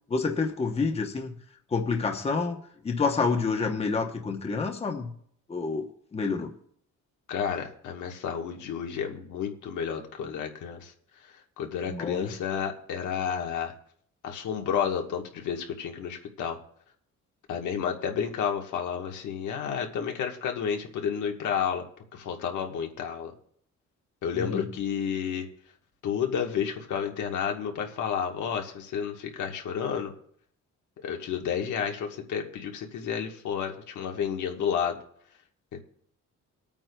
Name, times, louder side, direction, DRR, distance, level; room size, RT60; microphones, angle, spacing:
voice 1, 0.1-1.3 1.7-2.6 2.8-5.1 5.5-5.9 6.1-6.5 11.9-12.3 24.3-24.7, left 4 dB, 20° left, 3 dB, 0.9 m, -28 dB
voice 2, 7.3-10.9 11.6-13.7 14.2-16.6 17.5-21.8 22.1-23.3 24.2-25.5 26.0-30.1 31.0-35.0 35.7-35.8, left 7 dB, 80° left, 3 dB, 1.4 m, -31 dB
25.0 x 8.9 x 2.3 m, 0.65 s
cardioid pair, 165°, 30 cm